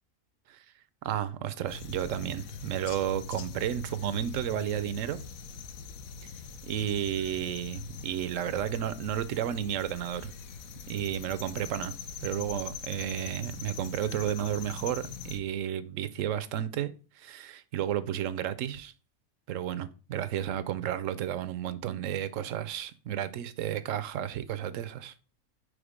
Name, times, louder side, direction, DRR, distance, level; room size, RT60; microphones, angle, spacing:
voice 1, 1.0-5.2 6.7-10.3 10.9-11.9 12.2-18.9 19.5-25.1, right 10 dB, 70° right, 0.9 m, -32 dB
sound 1, 1.7-15.4, left 5 dB, 85° left, 1.1 m, -42 dB
5.1 x 4.7 x 4.8 m
omnidirectional pair, 1.4 m